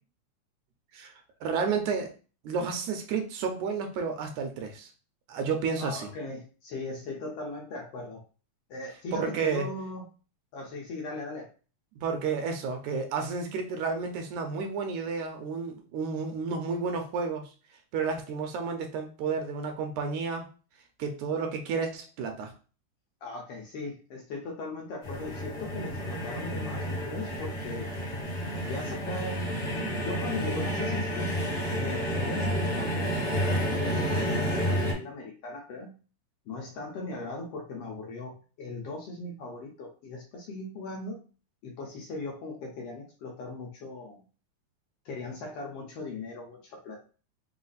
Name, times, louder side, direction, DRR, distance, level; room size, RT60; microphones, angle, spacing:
voice 1, 1.4-2.1 2.4-4.9 5.3-6.1 9.1-9.7 12.0-17.4 17.9-20.5 21.0-22.5, right 5 dB, 80° right, 4 dB, 2.0 m, -31 dB
voice 2, 5.8-8.2 8.7-10.1 10.5-11.5 23.2-27.9 28.6-31.4 31.7-36.0 36.4-41.2 41.6-44.3 45.0-47.0, left 2 dB, 70° left, -1 dB, 1.5 m, -39 dB
sound 1, 25.0-34.9, equal, 40° left, 0.8 m, -30 dB
5.0 x 2.1 x 3.9 m, 0.35 s
omnidirectional pair, 3.5 m